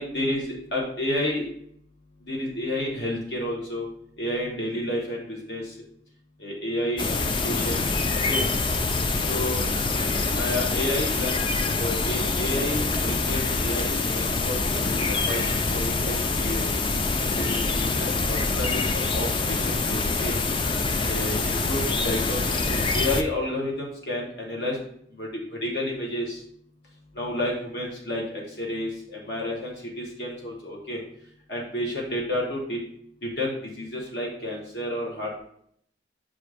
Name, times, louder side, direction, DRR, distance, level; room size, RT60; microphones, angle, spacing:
voice 1, 0.0-1.5 2.3-3.9 4.2-5.6 6.4-7.8 8.3-8.4 9.3-9.7 10.3-11.4 11.7-15.4 15.7-16.6 17.3-20.3 21.0-24.8 25.2-25.3 25.6-26.4 27.2-28.2 28.6-31.0 31.5-32.8 33.4-35.4, left 1 dB, 65° left, -2 dB, 1.2 m, -30 dB
sound 1, 7.0-23.2, left 3 dB, 25° left, 0.3 m, -25 dB
7.6 x 2.6 x 4.8 m, 0.67 s
head